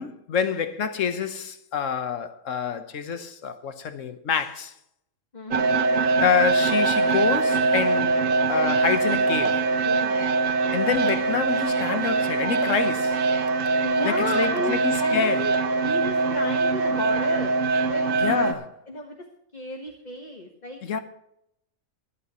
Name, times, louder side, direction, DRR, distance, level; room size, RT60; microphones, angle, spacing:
voice 1, 0.0-4.7 6.2-8.2 8.5-9.7 10.7-13.2 14.0-15.4 18.1-18.7 20.8-21.0, left 7 dB, 65° left, 1.4 m, -27 dB
voice 2, 5.3-5.7 9.8-10.2 13.8-15.5 15.8-17.5 17.8-18.3 18.9-19.2 19.5-21.0, left 3 dB, 35° left, 1.4 m, -33 dB
sound 1, 5.5-18.5, right 4 dB, 70° right, 1.3 m, -23 dB
23.5 x 8.3 x 3.1 m
omnidirectional pair, 1.4 m